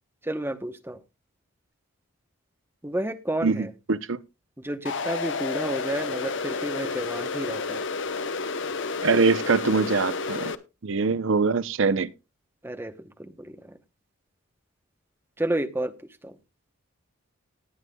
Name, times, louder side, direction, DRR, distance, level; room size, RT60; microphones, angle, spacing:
voice 1, 0.2-1.0 2.8-3.7 4.6-7.8 12.6-13.8 15.4-15.9 16.2-16.4, right 1 dB, 10° right, 0.8 m, -31 dB
voice 2, 3.4-4.2 9.0-10.5 10.8-12.1, right 4 dB, 60° right, 0.6 m, -23 dB
sound 1, 4.9-10.6, left 4 dB, 55° left, 0.8 m, -30 dB
19.0 x 9.4 x 2.2 m
head